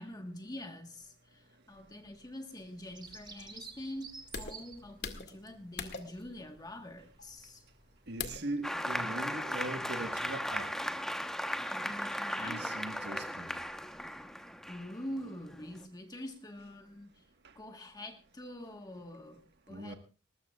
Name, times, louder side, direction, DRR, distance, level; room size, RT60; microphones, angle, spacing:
voice 1, 0.0-7.7 11.7-12.7 14.7-17.3 17.5-20.0, left 1 dB, 20° left, 1.4 m, -45 dB
sound 1, 2.6-8.6, left 5 dB, 55° left, 2.1 m, -45 dB
Bird vocalization bird call bird song, 2.9-10.8, right 4 dB, 20° right, 2.0 m, -54 dB
voice 2, 8.1-10.7 12.4-13.5 19.7-20.0, right 2 dB, 55° right, 1.5 m, -40 dB
Applause, 8.6-15.8, equal, ahead, 1.0 m, -37 dB
20.5 x 20.5 x 2.4 m
head